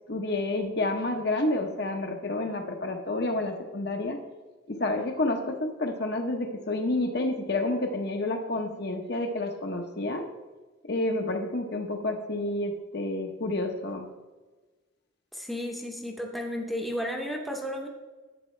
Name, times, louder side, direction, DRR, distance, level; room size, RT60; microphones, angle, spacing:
voice 1, 0.1-4.2 4.7-10.2 10.9-14.1, left 2 dB, 50° left, 4 dB, 1.0 m, -29 dB
voice 2, 15.3-17.9, equal, ahead, 1 dB, 0.8 m, -33 dB
11.0 x 8.5 x 3.3 m, 1.3 s
head